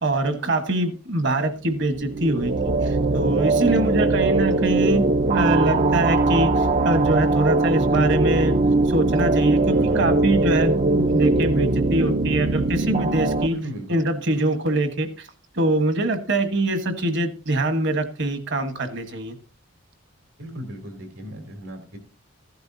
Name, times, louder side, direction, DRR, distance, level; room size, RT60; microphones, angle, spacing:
voice 1, 0.0-8.6 8.9-13.6 13.9-15.3 15.5-19.3, right 2 dB, 55° right, 8 dB, 1.4 m, -24 dB
sound 1, 1.9-13.5, right 2 dB, 35° right, 0.5 m, -21 dB
voice 2, 3.7-4.1 9.7-10.2 13.5-14.0 20.4-22.0, left 1 dB, 85° right, 4 dB, 3.3 m, -35 dB
15.0 x 11.5 x 2.7 m, 0.35 s
head